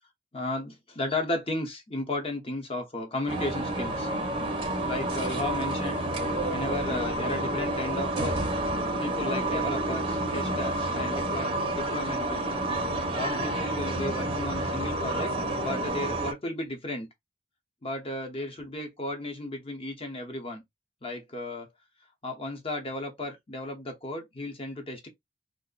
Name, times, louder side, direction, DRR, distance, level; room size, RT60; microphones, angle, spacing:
voice 1, 0.3-4.1 4.8-6.0 6.5-8.4 9.0-12.6 13.1-15.3 15.6-17.1 17.8-20.6 21.0-21.7 22.2-25.1, left 1 dB, 30° left, 0.8 m, -34 dB
sound 1, 3.3-16.3, right 1 dB, 30° right, 0.6 m, -29 dB
2.4 x 2.0 x 3.8 m
head